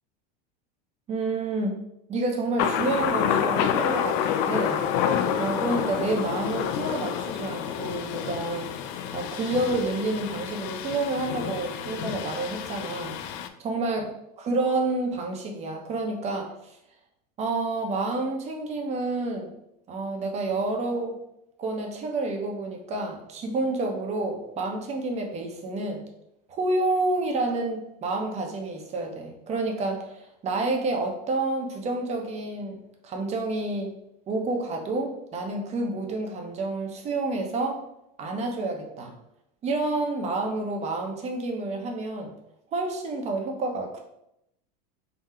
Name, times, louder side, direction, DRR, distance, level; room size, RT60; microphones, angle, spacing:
voice 1, 1.1-1.7 2.1-4.8 5.4-8.7 9.1-13.2 13.6-14.0 14.4-16.7 17.4-19.5 19.9-21.2 21.6-26.0 26.5-33.9 34.3-37.8 38.2-39.1 39.6-42.3 42.7-44.0, right 2 dB, 30° right, 2 dB, 0.9 m, -29 dB
Thunder, 2.6-13.5, left 8 dB, 60° left, 0.4 m, -28 dB
3.8 x 2.3 x 4.2 m, 0.80 s
supercardioid pair, 125°, 21 cm